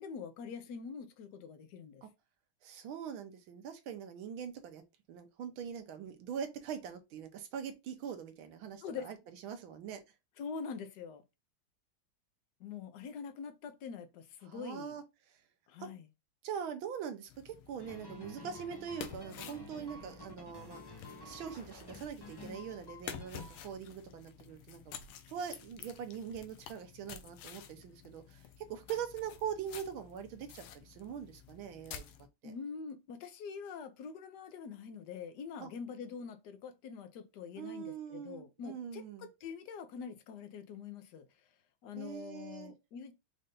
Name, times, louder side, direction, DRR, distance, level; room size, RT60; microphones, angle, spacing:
voice 1, 0.0-2.0 8.8-9.1 10.4-11.2 12.6-15.0 15.7-16.0 32.4-41.3 41.8-43.1, left 6 dB, 65° left, 1.2 m, -44 dB
voice 2, 2.6-4.8 5.1-10.0 14.4-15.4 15.8-15.9 16.4-20.8 21.2-25.0 25.3-28.4 28.7-32.0 32.4-32.5 35.6-35.7 37.6-39.3 41.9-42.7, right 8 dB, 80° right, 1.7 m, -43 dB
sound 1, 17.3-32.3, left 8 dB, 85° left, 1.5 m, -51 dB
sound 2, 17.8-23.7, left 2 dB, 25° left, 0.5 m, -51 dB
5.5 x 2.6 x 3.8 m
omnidirectional pair, 2.2 m